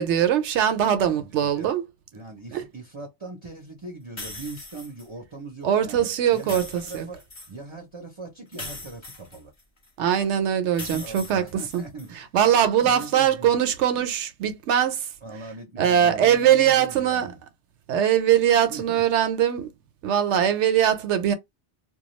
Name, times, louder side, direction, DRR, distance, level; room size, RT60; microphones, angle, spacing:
voice 1, 0.0-1.8 2.5-2.6 5.6-7.1 10.0-11.4 11.7-11.8 12.2-15.1 15.8-17.3 17.9-19.7 20.0-21.3, right 9 dB, 75° right, 0.9 m, -21 dB
voice 2, 1.2-1.8 2.1-9.5 10.9-12.2 12.8-13.5 15.2-17.4 18.7-19.0, right 3 dB, 30° right, 0.6 m, -40 dB
sound 1, 4.2-5.1 6.3-7.5 8.5-9.9 10.7-12.1, left 2 dB, 25° left, 0.9 m, -40 dB
2.3 x 2.2 x 3.0 m
omnidirectional pair, 1.2 m